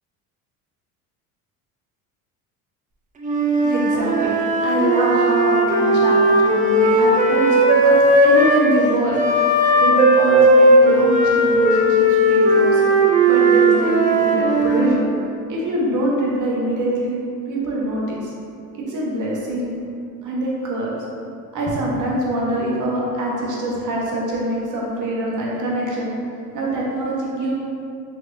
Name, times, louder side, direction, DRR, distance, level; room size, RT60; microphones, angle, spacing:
Wind instrument woodwind instrument, 3.2-8.7 9.1-15.0, right 1 dB, 20° right, 0.3 m, -16 dB
voice 1, 3.6-9.2 9.8-12.9 13.3-15.1 15.5-17.2 17.5-18.3 18.9-19.7 20.2-21.0 21.5-26.1 26.5-27.5, right 1 dB, 45° right, -4 dB, 1.0 m, -24 dB
3.3 x 3.2 x 2.6 m, 2.5 s
hypercardioid pair, 70°, 43 cm